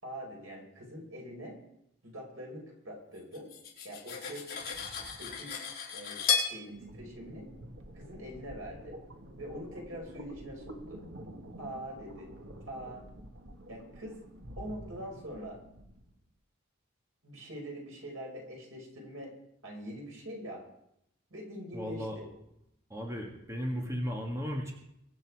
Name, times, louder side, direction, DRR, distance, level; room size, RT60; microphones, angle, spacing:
voice 1, 0.0-1.6 2.0-3.5 3.8-4.4 5.2-5.5 5.9-7.5 7.9-8.9 9.4-11.0 11.6-12.3 12.7-13.0 13.7-14.2 14.6-15.6 17.2-19.3 19.6-20.6 21.3-22.3, equal, 90° right, -1 dB, 5.2 m, -43 dB
Cutlery silverware, 3.3-6.5, left 6 dB, 45° left, 4.3 m, -33 dB
sound 1, 6.7-16.1, right 1 dB, 65° right, 1.7 m, -48 dB
voice 2, 21.7-22.2 22.9-24.7, equal, 15° right, 0 dB, 1.9 m, -35 dB
23.0 x 8.5 x 4.8 m, 0.79 s
head